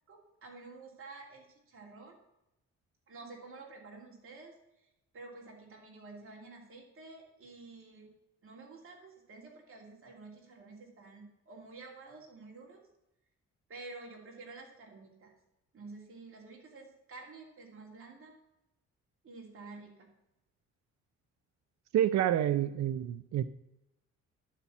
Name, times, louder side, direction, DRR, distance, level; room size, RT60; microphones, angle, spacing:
voice 1, 0.1-2.2 3.1-4.5 5.1-8.1 8.4-12.8 13.7-15.3 15.7-18.4 19.2-20.1, right 3 dB, 45° right, -1 dB, 2.9 m, -50 dB
voice 2, 21.9-23.4, right 11 dB, 65° right, 12 dB, 0.6 m, -28 dB
12.0 x 4.3 x 7.1 m, 0.90 s
cardioid pair, 90°, 30 cm